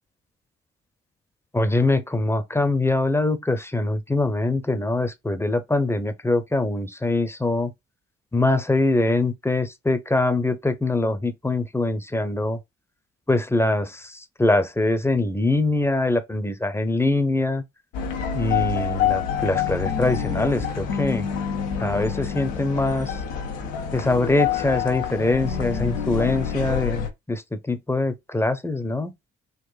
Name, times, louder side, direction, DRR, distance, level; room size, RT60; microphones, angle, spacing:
voice 1, 1.5-7.7 8.3-12.6 13.3-17.6 18.3-21.3 21.8-23.2 23.9-29.1, left 2 dB, 10° left, 0.7 m, -23 dB
sound 1, 17.9-27.1, left 7 dB, 85° left, 0.7 m, -27 dB
3.9 x 2.4 x 2.3 m
hypercardioid pair, 45°, 31 cm